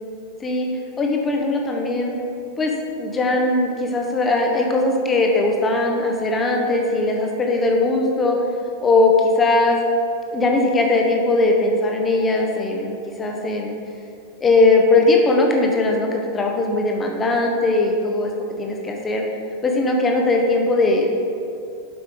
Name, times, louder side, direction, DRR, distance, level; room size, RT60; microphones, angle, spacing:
voice 1, 1.0-2.2 2.6-8.4 8.8-9.8 10.3-13.7 14.4-18.3 18.6-19.2 19.6-21.2, left 2 dB, 20° left, 1 dB, 1.0 m, -19 dB
7.9 x 5.4 x 3.6 m, 2.5 s
figure-of-eight pair, 90°, 0 cm